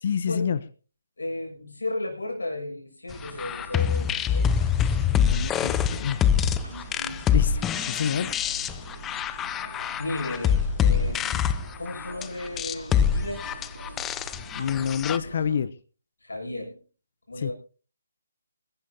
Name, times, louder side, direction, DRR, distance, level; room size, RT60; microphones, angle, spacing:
voice 1, 0.0-0.6 5.2-6.5 7.3-8.5 14.1-14.2 14.5-15.7 17.4-17.5, left 7 dB, 45° left, 14 dB, 0.9 m, -28 dB
voice 2, 1.2-4.5 10.0-13.4 16.2-16.8 17.3-17.5, left 2 dB, 80° left, 0 dB, 6.7 m, -34 dB
sound 1, 3.1-15.6, right 2 dB, 80° right, 6.3 m, -43 dB
sound 2, 3.2-15.2, left 8 dB, 10° left, 0.6 m, -25 dB
21.5 x 15.0 x 2.8 m, 0.37 s
figure-of-eight pair, 145°, 0 cm